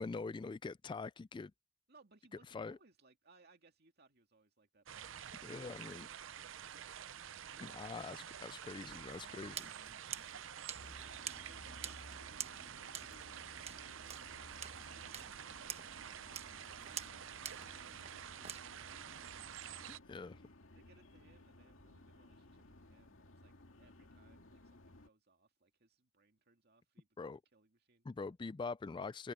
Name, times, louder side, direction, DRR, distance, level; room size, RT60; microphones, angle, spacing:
voice 1, 0.0-1.5 2.5-2.8 5.4-6.1 7.6-9.5 19.9-20.4 27.2-27.4 28.1-29.3, left 4 dB, 25° left, 0.3 m, -44 dB
voice 2, 1.9-5.1 7.5-7.9 9.2-16.2 16.8-19.3 20.7-23.5 23.8-28.1, right 3 dB, 55° right, 2.4 m, -68 dB
sound 1, 4.9-20.0, right 9 dB, 70° right, 0.6 m, -49 dB
sound 2, 9.5-18.6, right 8 dB, 30° right, 1.2 m, -49 dB
sound 3, 10.7-25.1, left 1 dB, 85° left, 2.2 m, -58 dB
head